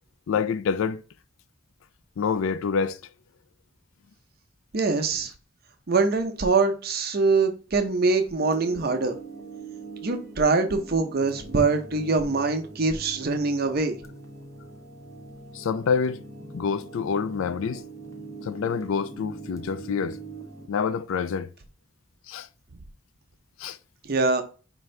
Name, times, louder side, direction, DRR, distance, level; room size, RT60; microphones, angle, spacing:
voice 1, 0.3-1.0 2.2-3.0 15.5-16.2 16.5-17.8 18.4-20.2 20.7-21.5 22.3-22.5 23.6-23.8, left 6 dB, 75° left, 0.4 m, -27 dB
voice 2, 4.7-5.3 5.9-9.1 10.0-14.0 24.0-24.4, right 3 dB, 50° right, 0.7 m, -23 dB
sound 1, 8.4-20.7, right 3 dB, 15° left, 0.6 m, -42 dB
4.7 x 2.6 x 3.2 m
head